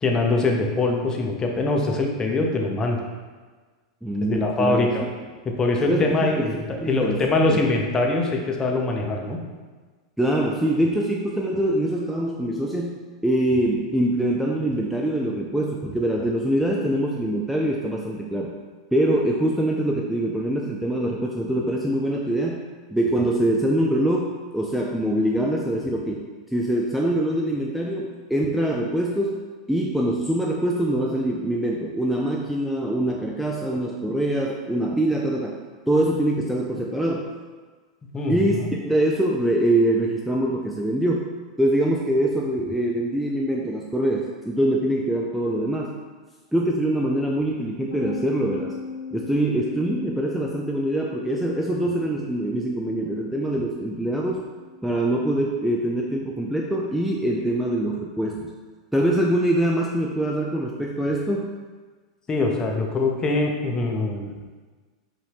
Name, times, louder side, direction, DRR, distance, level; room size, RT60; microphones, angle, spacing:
voice 1, 0.0-3.0 4.3-5.0 5.6-9.4 38.1-38.7 62.3-64.3, left 2 dB, 25° left, 1 dB, 0.7 m, -23 dB
voice 2, 4.0-4.9 5.8-6.4 6.8-7.2 7.5-7.8 10.2-18.6 18.9-22.6 22.9-35.6 35.9-37.3 38.3-38.6 38.8-41.3 41.6-46.0 46.5-48.7 49.1-54.4 54.8-58.5 58.9-61.6, right 1 dB, 5° right, -2 dB, 0.4 m, -24 dB
sound 1, 47.9-57.4, left 5 dB, 85° left, 0.7 m, -40 dB
5.1 x 2.7 x 3.5 m, 1.4 s
hypercardioid pair, 100°, 3 cm